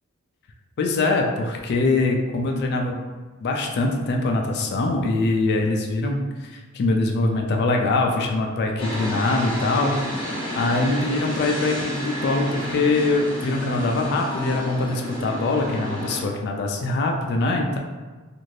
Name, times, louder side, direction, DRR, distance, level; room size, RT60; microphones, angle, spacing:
voice 1, 0.8-3.0 3.4-10.2 10.6-17.8, left 2 dB, 50° left, 2 dB, 0.3 m, -23 dB
sound 1, 8.8-16.2, equal, 25° left, 0.8 m, -30 dB
2.6 x 2.5 x 3.1 m, 1.3 s
head